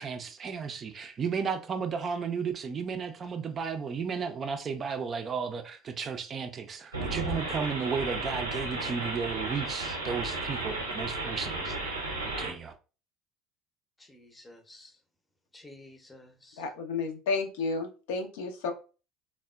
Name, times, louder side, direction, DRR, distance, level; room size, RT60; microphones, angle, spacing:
voice 1, 0.0-12.7, right 6 dB, 35° right, 0.3 m, -34 dB
sound 1, 6.9-12.5, right 2 dB, 90° right, 0.5 m, -34 dB
voice 2, 14.0-15.0 15.5-16.6, left 1 dB, 15° left, 0.6 m, -52 dB
voice 3, 16.6-18.7, left 4 dB, 65° left, 0.4 m, -32 dB
3.4 x 2.1 x 2.2 m
figure-of-eight pair, 65°, 0 cm